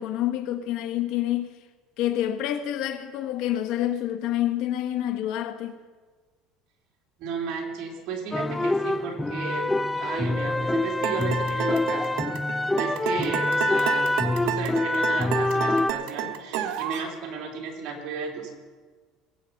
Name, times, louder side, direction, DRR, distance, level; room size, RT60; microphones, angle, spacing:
voice 1, 0.0-1.5 2.0-5.7, left 12 dB, 65° left, 1.3 m, -27 dB
voice 2, 7.2-9.7 10.0-12.3 12.7-14.1 14.4-18.5, right 5 dB, 60° right, 3.3 m, -34 dB
sound 1, 8.3-15.9, left 2 dB, 10° left, 0.4 m, -25 dB
sound 2, 11.0-17.1, right 10 dB, 75° right, 1.1 m, -31 dB
21.5 x 8.4 x 5.3 m
cardioid pair, 130°, 0 cm